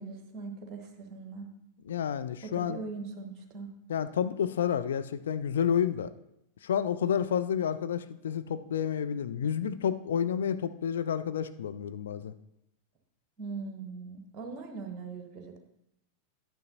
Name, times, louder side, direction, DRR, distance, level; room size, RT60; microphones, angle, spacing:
voice 1, 0.0-1.5 2.4-3.7 13.4-15.6, right 4 dB, 30° right, 5 dB, 1.1 m, -40 dB
voice 2, 1.8-2.8 3.9-6.1 6.6-12.3, left 8 dB, 65° left, 11 dB, 0.4 m, -30 dB
10.5 x 9.3 x 2.7 m, 0.81 s
figure-of-eight pair, 90°, 0 cm